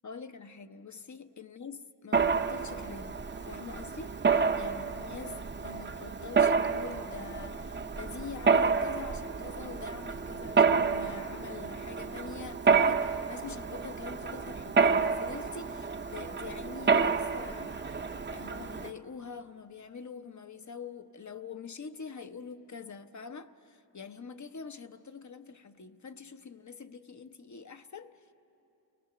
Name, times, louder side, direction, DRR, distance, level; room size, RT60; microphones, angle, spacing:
voice 1, 0.0-28.1, left 5 dB, 50° left, 0.8 m, -45 dB
Mechanisms, 2.1-18.9, right 5 dB, 30° right, 0.6 m, -29 dB
29.5 x 19.5 x 6.7 m
wide cardioid pair, 95°, 38 cm